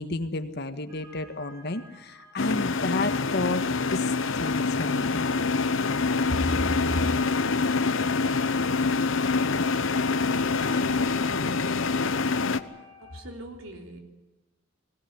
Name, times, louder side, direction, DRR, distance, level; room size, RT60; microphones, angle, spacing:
voice 1, 0.0-3.6 3.9-5.2 6.9-7.0, left 2 dB, 55° left, 8 dB, 1.6 m, -31 dB
sound 1, 0.9-13.2, equal, 20° right, 5.1 m, -52 dB
sound 2, 2.4-12.6, left 4 dB, 70° left, 1.0 m, -25 dB
voice 2, 13.0-14.0, right 1 dB, 85° right, 3 dB, 3.7 m, -42 dB
21.0 x 18.0 x 9.6 m, 1.1 s
head